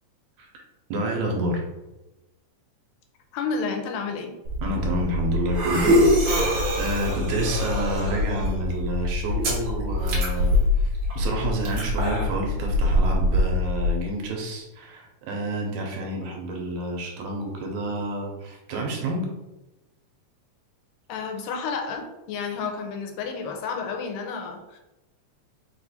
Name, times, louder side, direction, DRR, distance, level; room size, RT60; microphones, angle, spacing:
voice 1, 0.9-1.6 4.6-10.9 11.2-19.3, right 1 dB, 75° right, 0 dB, 1.9 m, -29 dB
voice 2, 3.3-4.3 21.1-24.8, left 5 dB, 85° left, 3 dB, 2.2 m, -31 dB
sound 1, 4.4-13.9, left 1 dB, 60° right, 1.5 m, -23 dB
4.8 x 2.4 x 4.1 m, 1.0 s
omnidirectional pair, 3.7 m